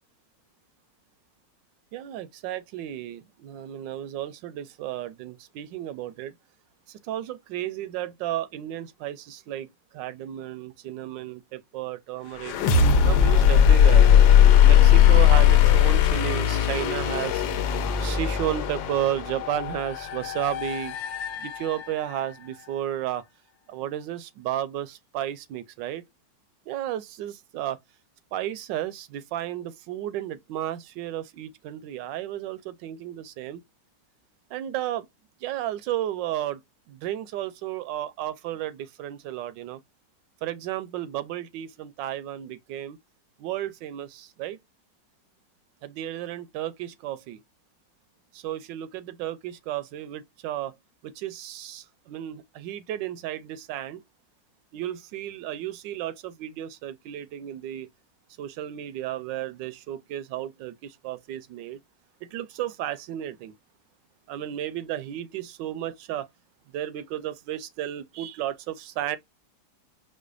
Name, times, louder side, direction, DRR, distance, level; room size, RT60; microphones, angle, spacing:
voice 1, 1.9-6.3 6.9-12.6 13.0-14.1 14.6-17.4 18.0-21.0 21.4-23.2 23.7-26.0 26.7-27.8 28.3-33.6 34.5-35.1 35.4-36.6 36.9-39.8 40.4-43.0 43.4-44.6 45.8-47.4 48.3-50.7 51.0-54.0 54.7-57.9 58.4-61.8 62.2-63.5 64.3-66.3 66.7-69.2, right 12 dB, 80° right, 1.2 m, -33 dB
sound 1, 12.4-22.1, left 9 dB, 85° left, 1.3 m, -19 dB
5.0 x 2.1 x 2.3 m
omnidirectional pair, 2.0 m